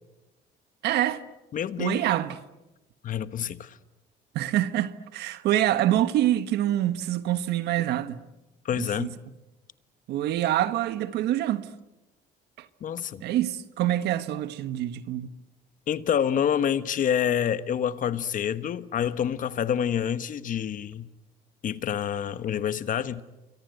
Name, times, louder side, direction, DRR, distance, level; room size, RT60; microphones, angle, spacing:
voice 1, 0.8-1.2 1.8-2.4 4.3-8.2 8.8-9.1 10.1-11.7 12.6-12.7 13.2-15.3, right 13 dB, 80° right, 1.5 m, -26 dB
voice 2, 1.5-2.0 3.0-3.7 8.6-9.1 12.8-13.2 15.9-21.1 21.6-23.2, left 9 dB, 50° left, 1.3 m, -27 dB
29.0 x 24.0 x 8.0 m
cardioid pair, 110°, 17 cm